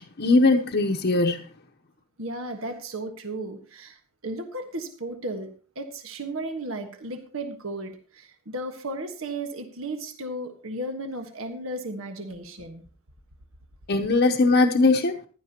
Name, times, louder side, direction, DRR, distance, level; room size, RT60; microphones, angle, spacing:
voice 1, 0.0-1.4 13.9-15.2, left 3 dB, 55° left, 0.8 m, -20 dB
voice 2, 2.2-5.5 5.7-12.8, right 1 dB, 75° right, 1.4 m, -34 dB
15.5 x 11.5 x 2.9 m
head